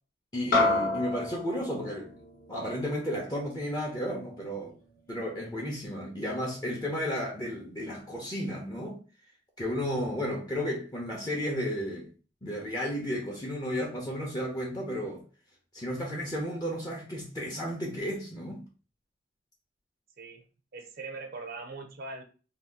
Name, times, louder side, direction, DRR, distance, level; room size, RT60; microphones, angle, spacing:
voice 1, 0.3-2.1 2.5-4.7 5.1-9.0 9.6-12.1 12.4-15.2 15.7-18.6, equal, 20° left, 0.7 m, -33 dB
sound 1, 0.5-5.1, left 2 dB, 50° left, 0.9 m, -31 dB
voice 2, 20.7-22.2, right 3 dB, 55° right, 0.6 m, -41 dB
2.8 x 2.3 x 3.5 m
head